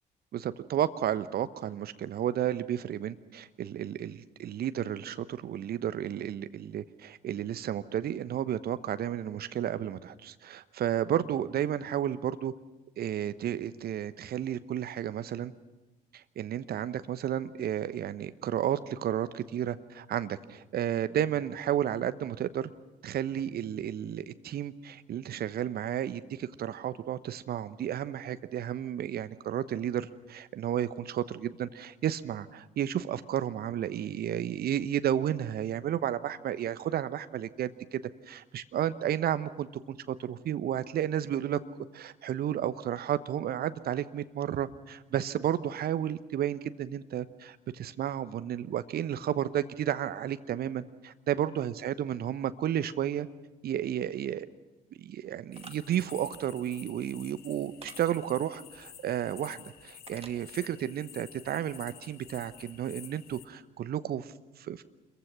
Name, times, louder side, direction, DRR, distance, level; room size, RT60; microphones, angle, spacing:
voice 1, 0.3-12.5 13.0-15.5 16.1-22.7 23.0-38.0 38.3-41.6 41.9-53.3 53.6-54.5 55.0-64.8, right 10 dB, 50° right, 13 dB, 1.1 m, -32 dB
sound 1, 55.5-63.4, left 9 dB, 50° left, 1.4 m, -50 dB
sound 2, 55.5-55.8 57.8-58.0 60.1-60.4, right 4 dB, 30° right, 2.2 m, -47 dB
27.0 x 22.5 x 6.1 m, 1.1 s
figure-of-eight pair, 50°, 20 cm